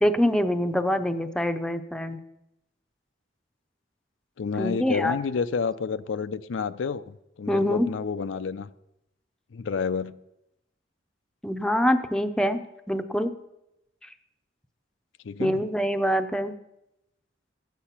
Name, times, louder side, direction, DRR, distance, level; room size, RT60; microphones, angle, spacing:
voice 1, 0.0-2.2 4.6-5.2 7.5-7.9 11.4-12.6 12.9-13.3 14.0-14.1 15.4-16.5, equal, 5° left, 8 dB, 0.6 m, -25 dB
voice 2, 4.4-8.7 9.5-10.2 15.2-15.6, left 5 dB, 85° left, 13 dB, 0.5 m, -29 dB
13.0 x 8.3 x 5.8 m, 0.88 s
head